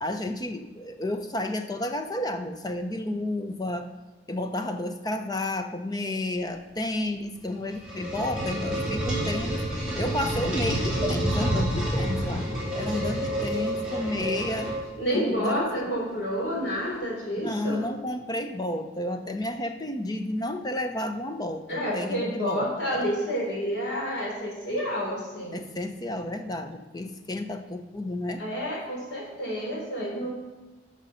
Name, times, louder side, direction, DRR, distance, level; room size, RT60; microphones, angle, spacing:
voice 1, 0.0-3.9 4.3-9.6 9.9-14.7 15.1-15.9 17.4-23.1 25.5-28.4 30.2-30.3, left 1 dB, 20° left, 7 dB, 0.7 m, -31 dB
sound 1, 7.5-15.2, right 1 dB, 5° right, 3.6 m, -28 dB
voice 2, 15.0-17.8 21.7-25.6 28.4-30.3, equal, 80° left, -3 dB, 3.8 m, -29 dB
10.5 x 6.3 x 5.6 m, 1.1 s
head